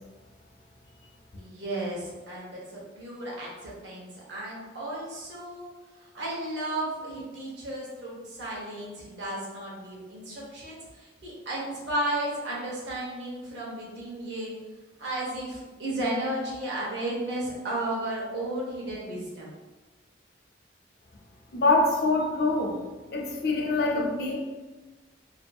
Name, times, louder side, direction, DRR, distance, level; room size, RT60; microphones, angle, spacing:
voice 1, 1.4-5.7 6.0-14.5 15.0-19.5, right 1 dB, 80° right, -5 dB, 0.9 m, -34 dB
voice 2, 21.5-22.7 23.1-24.4, left 2 dB, 60° left, 0 dB, 0.5 m, -24 dB
2.6 x 2.3 x 2.5 m, 1.2 s
head